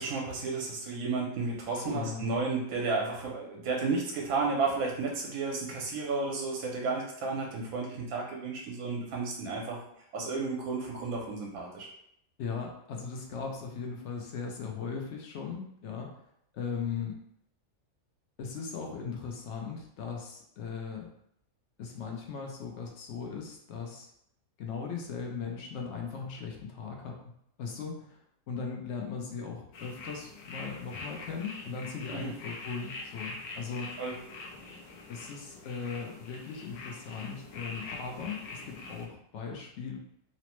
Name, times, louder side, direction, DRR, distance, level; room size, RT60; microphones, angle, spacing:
voice 1, 0.0-9.8 10.1-11.9 32.1-32.3 34.0-34.2, right 4 dB, 80° right, -1 dB, 1.0 m, -32 dB
voice 2, 1.7-2.2 12.4-16.2 16.5-17.1 18.4-21.1 21.8-24.1 24.6-27.2 27.6-28.2 28.5-34.0 35.1-40.0, left 5 dB, 65° left, 1 dB, 0.7 m, -38 dB
sound 1, 29.7-39.1, left 3 dB, 85° left, 1.1 m, -44 dB
3.0 x 2.0 x 2.9 m, 0.73 s
omnidirectional pair, 1.5 m